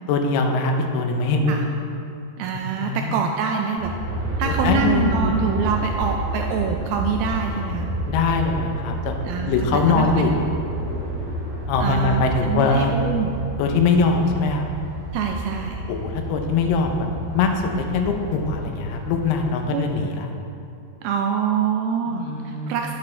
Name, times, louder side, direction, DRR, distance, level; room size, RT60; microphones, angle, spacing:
voice 1, 0.1-1.7 2.8-3.2 4.4-5.4 8.1-9.2 9.5-10.3 11.7-12.9 13.6-14.6 15.9-17.1 17.3-17.5 17.8-20.3 22.1-22.8, left 4 dB, 80° left, 3 dB, 2.8 m, -22 dB
voice 2, 2.4-3.9 4.4-7.9 9.2-10.1 11.8-13.4 15.1-15.8 19.7-19.9 21.0-22.9, right 6 dB, 85° right, 2 dB, 2.1 m, -25 dB
Aircraft, 3.8-20.0, right 1 dB, 60° right, 4.0 m, -29 dB
10.5 x 8.5 x 3.3 m, 2.5 s
omnidirectional pair, 4.7 m